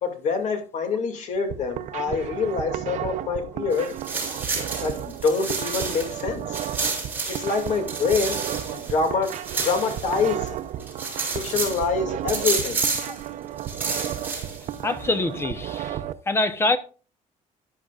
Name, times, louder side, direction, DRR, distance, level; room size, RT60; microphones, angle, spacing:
voice 1, 0.0-3.9 4.8-6.6 7.3-8.4 8.7-10.6 11.4-12.8, left 4 dB, 55° left, 2.3 m, -26 dB
sound 1, 1.4-16.1, right 11 dB, 60° right, 0.7 m, -33 dB
sound 2, 3.7-6.2 6.5-10.5 10.8-11.8 12.3-13.2 13.6-14.7, right 4 dB, 10° right, 6.3 m, -30 dB
voice 2, 14.8-16.0 16.3-16.8, left 2 dB, 15° left, 0.8 m, -24 dB
14.0 x 10.5 x 2.4 m
cardioid pair, 150°, 14 cm